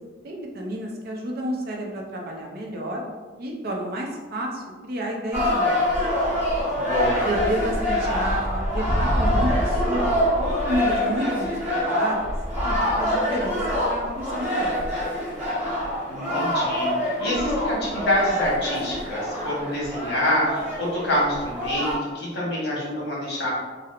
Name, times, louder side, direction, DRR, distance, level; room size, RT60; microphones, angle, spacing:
voice 1, 0.2-3.0 3.4-5.8 7.2-12.3 12.6-15.4, right 1 dB, 50° right, 0 dB, 0.5 m, -30 dB
sound 1, 5.3-22.0, equal, 10° right, 0.9 m, -25 dB
voice 2, 6.7-7.3 16.1-23.5, left 1 dB, 60° left, -5 dB, 1.1 m, -26 dB
4.2 x 2.0 x 2.4 m, 1.3 s
head